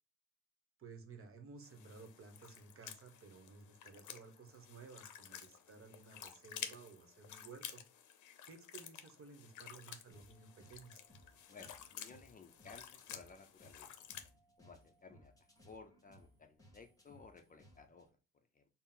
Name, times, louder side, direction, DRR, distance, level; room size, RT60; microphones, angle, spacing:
voice 1, 0.8-7.8 8.4-11.0, right 4 dB, 45° right, 6 dB, 0.9 m, -55 dB
sound 1, 1.6-14.3, left 9 dB, 75° left, 0.6 m, -52 dB
sound 2, 10.1-18.1, equal, 10° left, 1.2 m, -65 dB
voice 2, 11.5-13.9 14.6-15.3 15.6-18.1 18.5-18.6, left 4 dB, 30° left, 7 dB, 0.5 m, -57 dB
4.1 x 2.0 x 3.7 m, 0.32 s
cardioid pair, 90°, 30 cm